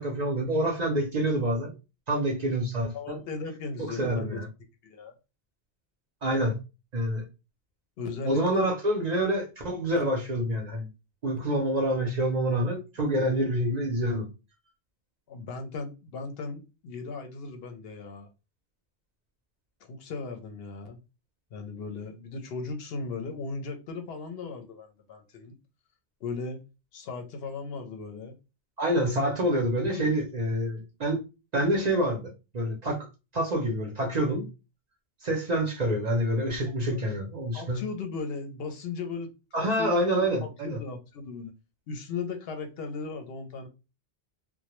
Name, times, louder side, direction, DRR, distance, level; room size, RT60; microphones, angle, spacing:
voice 1, 0.0-1.7 2.1-3.2 4.0-4.5 6.2-6.6 6.9-7.3 8.3-10.9 11.2-14.3 28.8-31.2 31.5-33.1 33.3-34.5 35.2-37.8 39.5-40.8, right 1 dB, 50° right, 0.6 m, -27 dB
voice 2, 2.9-4.4 4.8-5.1 8.0-8.7 15.3-18.3 19.8-21.0 21.5-25.6 26.2-26.6 26.9-28.4 30.0-30.2 36.9-37.0 37.5-39.3 39.6-41.5 41.9-43.7, left 4 dB, 70° left, 0.8 m, -37 dB
2.1 x 2.1 x 2.9 m
omnidirectional pair, 1.1 m